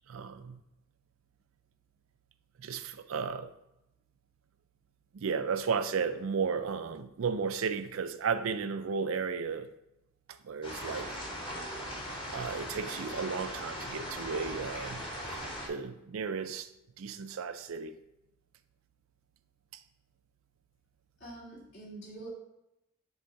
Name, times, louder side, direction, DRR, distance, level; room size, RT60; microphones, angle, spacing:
voice 1, 0.1-0.6 2.6-3.5 5.1-9.7 10.3-11.1 12.3-15.4 15.6-16.7 17.0-18.0, right 5 dB, 75° right, 11 dB, 0.4 m, -34 dB
sound 1, 10.6-15.7, equal, 25° left, 1.2 m, -39 dB
voice 2, 21.2-22.3, right 2 dB, 60° left, -7 dB, 2.2 m, -46 dB
6.5 x 3.5 x 4.5 m, 0.87 s
head